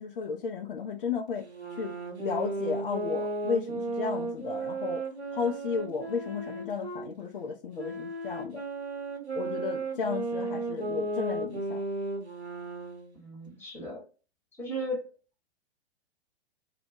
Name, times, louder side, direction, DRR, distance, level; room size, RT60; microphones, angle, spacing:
voice 1, 0.0-1.4 1.8-5.0 5.3-8.6 9.3-11.8, left 5 dB, 60° left, 0.4 m, -33 dB
sound 1, 1.4-7.1 7.8-13.1, right 2 dB, 90° right, 0.7 m, -35 dB
voice 2, 13.1-14.0 14.6-15.1, equal, 5° left, 1.0 m, -36 dB
2.2 x 2.1 x 2.6 m
figure-of-eight pair, 105°, 32 cm